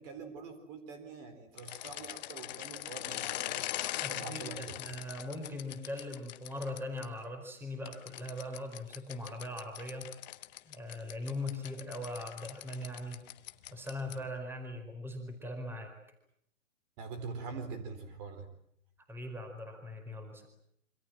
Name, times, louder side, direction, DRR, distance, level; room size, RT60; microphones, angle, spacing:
voice 1, 0.0-3.6 4.1-4.8 17.0-18.5, right 4 dB, 30° right, 9 dB, 4.2 m, -44 dB
sound 1, 1.5-7.1 7.9-14.3, left 15 dB, 35° left, 1.3 m, -42 dB
voice 2, 4.0-10.1 10.6-13.2 13.7-15.9 19.1-20.5, left 1 dB, 5° right, 6 dB, 4.8 m, -40 dB
27.5 x 26.0 x 7.5 m, 0.71 s
hypercardioid pair, 150°, 39 cm